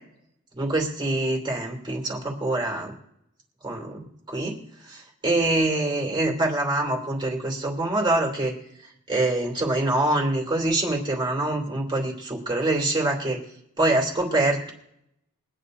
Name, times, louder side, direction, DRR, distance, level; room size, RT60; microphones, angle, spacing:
voice 1, 0.5-2.9 3.6-4.6 4.8-8.5 9.1-13.4 13.8-14.7, right 2 dB, 20° right, 1 dB, 2.8 m, -25 dB
23.0 x 9.9 x 2.5 m, 0.75 s
head